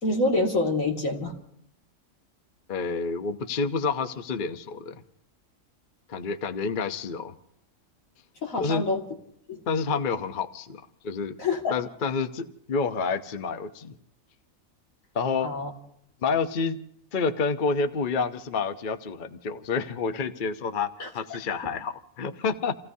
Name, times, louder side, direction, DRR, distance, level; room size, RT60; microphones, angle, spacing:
voice 1, 0.0-1.3 8.4-9.0 9.5-9.6 11.4-11.8 15.4-15.7 21.0-21.1, left 2 dB, 85° left, 1 dB, 2.6 m, -26 dB
voice 2, 2.7-4.9 6.1-7.3 8.6-8.8 9.7-11.3 11.7-13.9 15.1-15.5 16.2-16.8 17.1-22.8, left 5 dB, 45° left, 9 dB, 0.9 m, -29 dB
29.5 x 16.5 x 2.7 m, 0.71 s
omnidirectional pair, 1.4 m